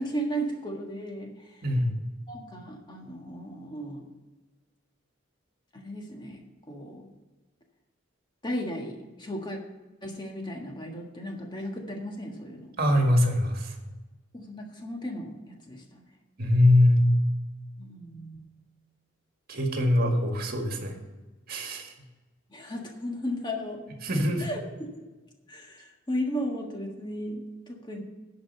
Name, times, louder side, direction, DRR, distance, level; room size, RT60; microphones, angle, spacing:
voice 1, 0.0-1.6 2.3-4.0 5.7-7.1 8.4-9.6 10.0-12.7 14.3-16.0 17.8-18.5 22.5-23.8 24.4-25.0 25.5-28.0, equal, 20° left, 1 dB, 1.5 m, -35 dB
voice 2, 1.6-2.0 12.8-13.8 16.4-17.1 19.5-20.9 21.5-21.9 24.0-24.5, left 1 dB, 50° right, 3 dB, 1.7 m, -23 dB
10.0 x 5.2 x 6.7 m, 1.2 s
head